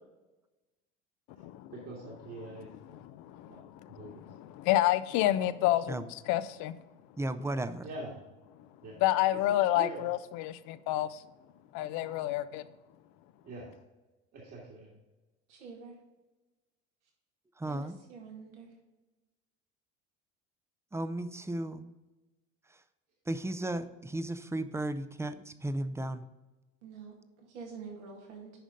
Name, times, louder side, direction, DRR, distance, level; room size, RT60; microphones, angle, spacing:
voice 1, 1.7-2.7 3.5-3.6 3.9-4.2 7.8-8.2 8.8-9.0 9.5-10.1 13.4-13.7 14.3-15.0, right 2 dB, 45° right, 2.1 m, -43 dB
voice 2, 2.9-6.7 9.0-11.2 11.7-12.6, left 14 dB, 55° left, 0.6 m, -29 dB
voice 3, 7.2-7.9 17.6-18.0 20.9-21.9 23.3-26.3, right 1 dB, 10° right, 0.5 m, -35 dB
voice 4, 15.5-15.9 17.7-18.7 26.8-28.5, right 5 dB, 75° right, 2.1 m, -47 dB
10.0 x 5.1 x 3.8 m
hypercardioid pair, 65°, 35 cm